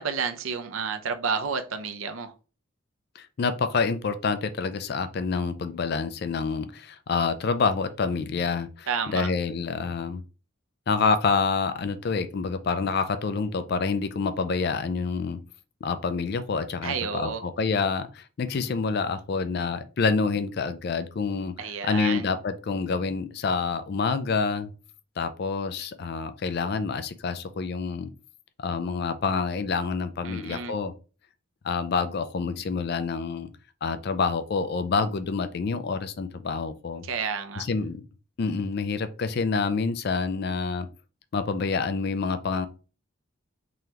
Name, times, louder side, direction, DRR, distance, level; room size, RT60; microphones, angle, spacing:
voice 1, 0.0-2.3 8.9-9.3 16.8-17.4 21.6-22.3 30.2-30.7 37.0-37.7, right 5 dB, 80° right, 8 dB, 0.6 m, -30 dB
voice 2, 3.2-10.2 10.9-15.4 15.8-21.5 21.8-24.7 25.2-28.1 28.6-30.9 31.6-33.5 33.8-37.1 37.6-38.0 38.4-40.9 41.3-42.7, left 4 dB, 50° left, 10 dB, 0.4 m, -27 dB
3.8 x 3.1 x 2.8 m, 0.34 s
head